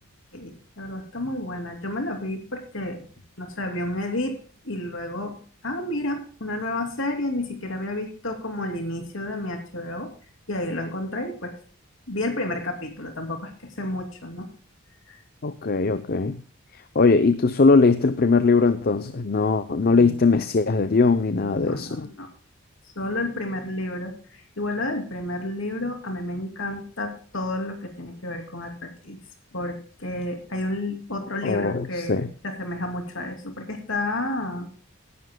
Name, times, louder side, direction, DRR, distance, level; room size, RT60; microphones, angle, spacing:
voice 1, 0.3-3.0 3.4-4.4 4.6-5.4 5.6-10.1 10.5-11.5 12.1-14.5 15.1-15.2 21.3-22.3 23.0-29.2 29.5-34.7, left 1 dB, 60° left, 3 dB, 2.9 m, -31 dB
voice 2, 15.4-16.4 16.7-22.1 31.4-32.3, left 4 dB, 45° left, 12 dB, 0.6 m, -20 dB
17.0 x 11.0 x 2.2 m, 0.40 s
head